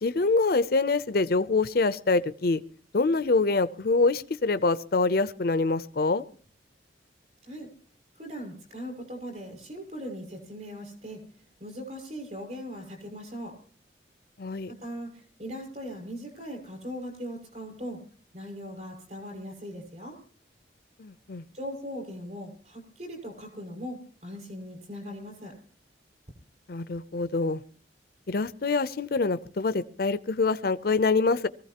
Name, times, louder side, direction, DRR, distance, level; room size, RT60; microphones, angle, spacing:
voice 1, 0.0-2.6 2.9-6.2 14.4-14.7 21.0-21.4 26.7-27.6 28.3-31.5, left 3 dB, 55° left, 13 dB, 0.6 m, -25 dB
voice 2, 8.1-11.2 11.6-13.6 14.7-18.0 18.3-20.2 21.5-25.5, equal, 40° right, 2 dB, 6.0 m, -39 dB
24.0 x 15.0 x 2.9 m, 0.43 s
head